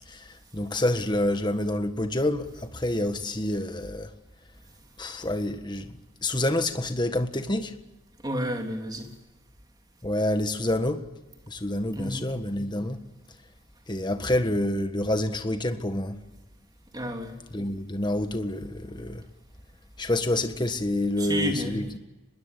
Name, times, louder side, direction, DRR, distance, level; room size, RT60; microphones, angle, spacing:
voice 1, 0.1-4.1 5.0-7.7 10.0-11.1 11.5-13.0 13.9-16.1 17.5-19.2 20.0-22.0, left 1 dB, 25° left, 1.6 m, -28 dB
voice 2, 8.2-9.1 11.9-12.3 16.9-17.3 21.2-21.9, equal, 20° right, 3.3 m, -30 dB
25.5 x 21.0 x 8.4 m
head